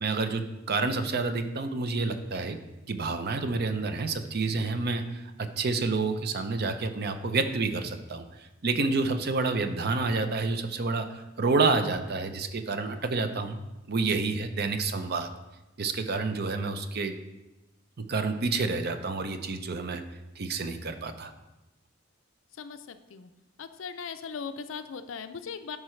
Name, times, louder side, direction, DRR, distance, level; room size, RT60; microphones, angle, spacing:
voice 1, 0.0-2.6 2.9-8.2 8.6-11.1 11.4-13.6 13.9-15.3 15.8-17.1 18.0-20.0 20.4-21.3, right 3 dB, 55° right, 8 dB, 0.6 m, -29 dB
voice 2, 22.6-23.3 23.6-25.8, left 6 dB, 75° left, 10 dB, 0.5 m, -39 dB
12.0 x 4.8 x 3.2 m, 1.0 s
head